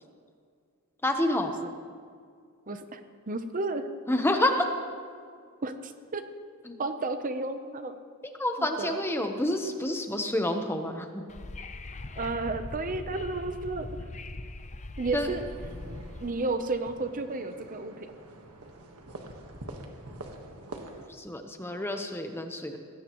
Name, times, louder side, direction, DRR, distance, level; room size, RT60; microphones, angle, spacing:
voice 1, 1.0-1.5 4.1-4.7 6.7-6.8 8.2-11.2 15.1-15.4 21.1-22.8, left 1 dB, 10° left, 5 dB, 0.9 m, -28 dB
voice 2, 2.7-3.0 3.3-3.9 5.6-6.2 6.8-8.0 8.6-9.0 12.2-14.0 15.0-15.5 15.9-18.1, right 3 dB, 40° right, 8 dB, 0.7 m, -32 dB
Wind / Subway metro underground, 11.3-16.3, left 2 dB, 30° left, 0.6 m, -41 dB
sound 1, 15.2-21.1, right 2 dB, 85° right, 1.4 m, -45 dB
20.5 x 16.5 x 3.1 m, 2.2 s
head